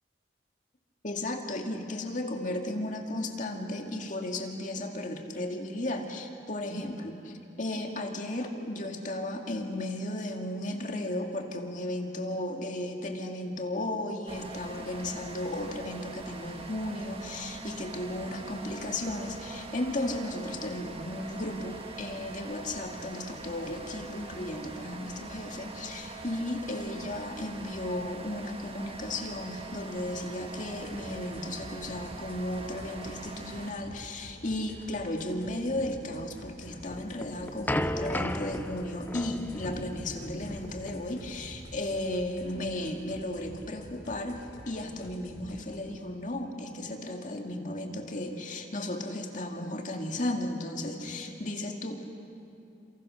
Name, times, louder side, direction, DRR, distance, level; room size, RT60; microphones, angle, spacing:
voice 1, 1.0-52.0, left 1 dB, 45° left, 3 dB, 2.3 m, -35 dB
sound 1, 14.3-33.7, right 3 dB, 35° right, 1.5 m, -43 dB
sound 2, 30.8-45.8, equal, 80° left, 4.1 m, -49 dB
sound 3, 36.9-41.9, left 1 dB, 10° left, 0.6 m, -35 dB
29.5 x 27.0 x 6.5 m, 2.7 s
head